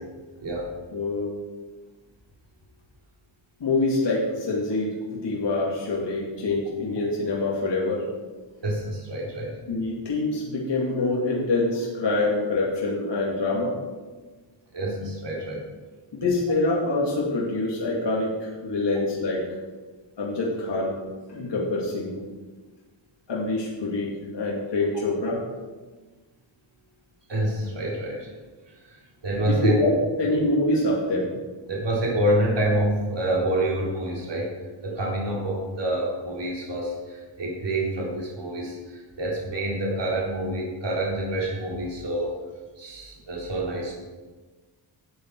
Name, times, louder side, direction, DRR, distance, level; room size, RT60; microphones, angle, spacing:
voice 1, 0.9-1.3 3.6-8.0 9.7-13.7 16.1-19.4 20.2-21.0 21.3-22.2 23.3-25.4 29.4-31.3, left 2 dB, 60° left, -4 dB, 2.6 m, -25 dB
voice 2, 8.6-9.6 14.7-15.6 27.3-28.3 28.7-29.7 31.7-34.5 34.8-42.3 42.8-43.9, right 1 dB, 60° right, -3 dB, 3.6 m, -27 dB
13.0 x 8.3 x 4.7 m, 1.3 s
wide cardioid pair, 130°, 49 cm